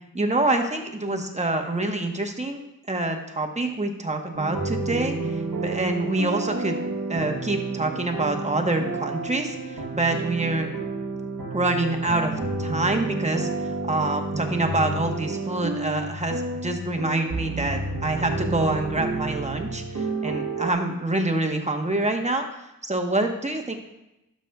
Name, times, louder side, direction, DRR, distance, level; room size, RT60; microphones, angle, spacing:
voice 1, 0.1-2.6 2.9-6.8 7.1-10.7 11.5-12.3 12.6-23.7, right 2 dB, 20° right, 3 dB, 1.1 m, -26 dB
sound 1, 4.3-20.7, right 3 dB, 85° right, 1.1 m, -30 dB
12.0 x 6.2 x 2.3 m, 0.90 s
wide cardioid pair, 55°, 34 cm